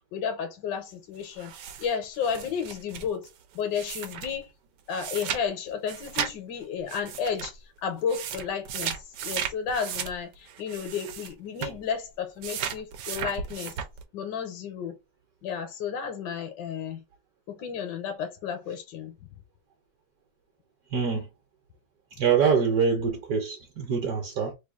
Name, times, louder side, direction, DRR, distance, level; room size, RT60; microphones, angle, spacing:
voice 1, 0.0-3.3 3.5-4.5 4.9-13.8 14.1-15.0 15.4-17.0 17.5-19.1, left 7 dB, 80° left, 1.3 m, -32 dB
sound 1, 1.4-4.4 4.9-5.4 5.7-6.3 6.9-7.5 8.0-11.3 11.6-11.8 12.4-14.0, right 8 dB, 85° right, 1.3 m, -35 dB
voice 2, 20.9-21.3 22.2-24.5, right 6 dB, 65° right, 1.2 m, -24 dB
3.3 x 2.3 x 3.5 m
omnidirectional pair, 1.9 m